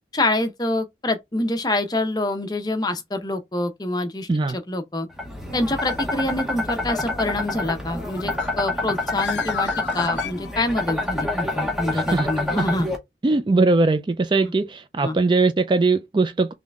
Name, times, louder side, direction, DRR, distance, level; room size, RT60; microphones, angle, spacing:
voice 1, 0.1-5.1 5.5-12.9 14.4-14.5 15.0-15.2, left 2 dB, 20° left, 0.7 m, -26 dB
sound 1, 5.2-13.0, left 2 dB, 5° right, 0.9 m, -27 dB
Bird, 7.9-11.0, left 8 dB, 70° left, 0.4 m, -35 dB
voice 2, 11.9-12.3 12.6-12.7 13.2-16.5, right 3 dB, 25° right, 0.3 m, -20 dB
3.7 x 3.2 x 3.5 m
head